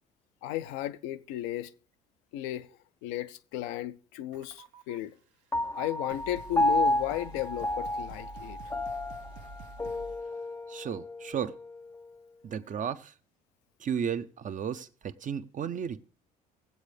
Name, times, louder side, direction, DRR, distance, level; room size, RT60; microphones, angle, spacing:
voice 1, 0.4-1.7 2.3-2.7 3.0-5.1 5.7-8.6, left 14 dB, 75° left, 0.6 m, -34 dB
sound 1, 4.3-5.0 5.7-5.8 6.1-10.3, right 3 dB, 70° right, 0.9 m, -48 dB
Piano, 5.5-12.2, left 1 dB, 10° left, 0.5 m, -32 dB
voice 2, 10.7-11.5 12.4-13.1 13.8-16.1, right 8 dB, 40° right, 0.7 m, -34 dB
19.5 x 8.1 x 3.3 m
hypercardioid pair, 55°, 20 cm